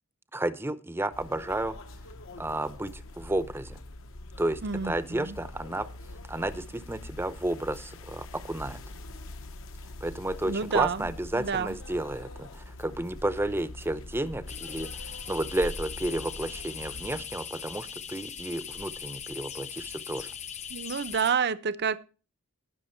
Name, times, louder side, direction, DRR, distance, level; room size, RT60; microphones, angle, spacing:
voice 1, 0.3-1.7 2.4-3.8 4.4-5.9 6.3-8.8 10.0-20.3, right 1 dB, 10° right, 0.7 m, -32 dB
sound 1, 1.1-17.3, left 2 dB, 65° left, 1.0 m, -44 dB
voice 2, 4.6-5.4 10.4-11.8 20.7-22.0, right 6 dB, 50° right, 0.7 m, -29 dB
sound 2, 14.5-21.3, left 7 dB, 30° left, 0.8 m, -40 dB
18.0 x 6.2 x 4.4 m
head